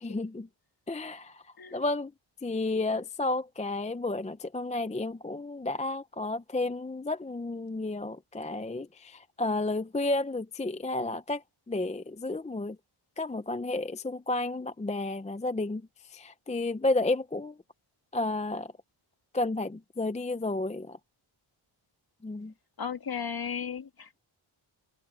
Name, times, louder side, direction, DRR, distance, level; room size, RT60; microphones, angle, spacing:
voice 1, 0.0-0.5 0.9-1.4 1.7-2.1 2.4-12.8 13.2-17.6 18.1-18.7 19.3-21.0 22.2-22.5, left 2 dB, 15° left, 0.5 m, -32 dB
voice 2, 22.8-24.2, left 7 dB, 45° left, 2.0 m, -35 dB
open air
wide cardioid pair, 180°, 50 cm